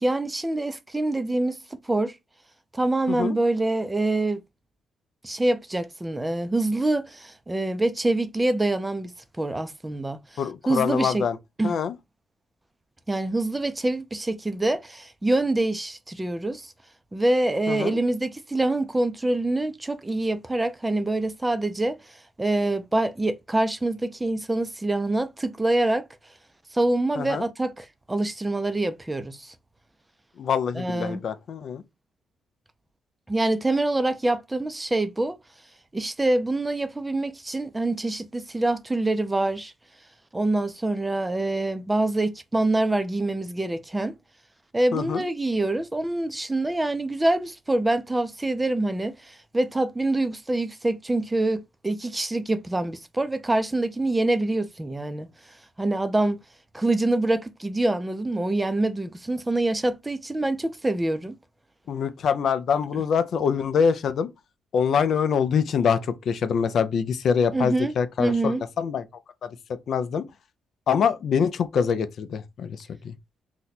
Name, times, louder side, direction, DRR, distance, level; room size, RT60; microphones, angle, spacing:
voice 1, 0.0-1.6 1.8-2.2 2.7-4.4 5.2-11.3 11.6-11.8 13.1-16.7 17.1-22.0 22.4-26.0 26.7-29.5 30.7-31.2 33.3-35.4 35.9-39.7 40.3-44.1 44.7-55.3 55.8-56.4 56.7-61.3 67.5-67.9 68.2-68.6, right 2 dB, 15° right, 0.4 m, -25 dB
voice 2, 10.4-11.4 11.6-11.9 17.7-18.0 27.2-27.5 30.4-31.8 44.9-45.2 61.9-64.3 64.7-69.0 69.4-69.5 69.9-70.2 70.9-73.1, left 7 dB, 60° left, 0.4 m, -25 dB
2.7 x 2.1 x 4.0 m
cardioid pair, 90°, 0 cm